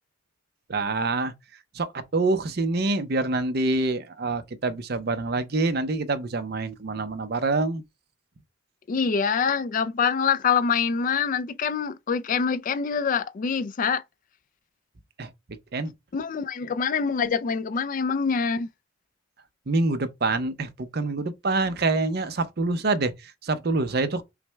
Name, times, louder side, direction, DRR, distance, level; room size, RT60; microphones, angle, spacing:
voice 1, 0.7-1.3 1.7-7.8 15.2-15.3 15.7-15.9 19.7-24.2, right 3 dB, 55° right, 0.6 m, -26 dB
voice 2, 8.9-14.0 16.1-18.7, left 6 dB, 45° left, 0.3 m, -25 dB
5.8 x 2.1 x 3.3 m
head